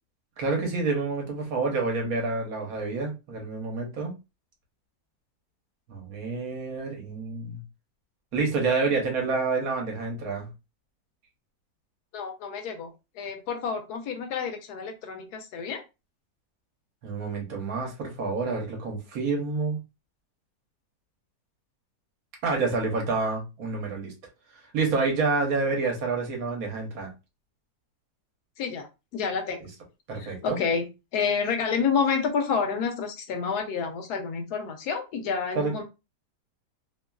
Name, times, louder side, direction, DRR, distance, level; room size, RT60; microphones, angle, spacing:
voice 1, 0.4-4.1 5.9-7.6 8.3-10.5 17.0-19.8 22.4-24.1 24.6-27.1 30.1-30.6 35.6-35.7, right 4 dB, 65° right, 1.2 m, -28 dB
voice 2, 12.1-15.8 28.6-28.9 29.1-29.6 30.2-30.9 31.1-35.8, left 6 dB, 75° left, 1.1 m, -29 dB
3.0 x 2.3 x 2.2 m
omnidirectional pair, 1.7 m